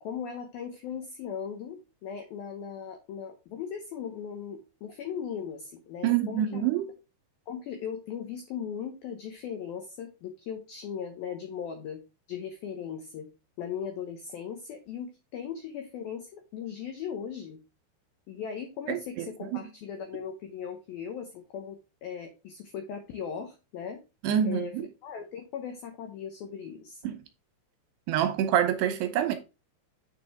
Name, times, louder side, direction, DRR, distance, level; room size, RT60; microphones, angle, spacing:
voice 1, 0.0-6.7 7.5-12.0 12.3-13.3 13.6-17.6 18.3-24.0 24.4-27.0, left 7 dB, 75° left, 2.2 m, -38 dB
voice 2, 6.0-6.9 18.9-19.3 19.5-19.6 24.2-24.9 27.0-27.2 28.1-29.3, right 10 dB, 75° right, 2.6 m, -26 dB
9.3 x 5.2 x 3.5 m
omnidirectional pair, 5.7 m